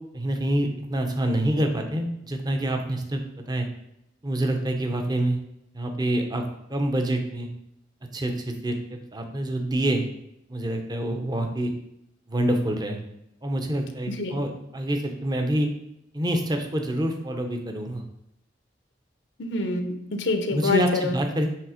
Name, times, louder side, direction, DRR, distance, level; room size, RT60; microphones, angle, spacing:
voice 1, 0.1-3.7 4.2-5.4 5.7-7.5 8.1-10.0 10.5-11.7 12.3-13.0 13.4-15.7 16.1-18.0 20.5-21.5, right 1 dB, 25° right, 4 dB, 0.8 m, -26 dB
voice 2, 14.1-14.5 19.4-21.2, left 3 dB, 75° left, 7 dB, 0.8 m, -26 dB
7.5 x 3.5 x 5.0 m, 0.79 s
head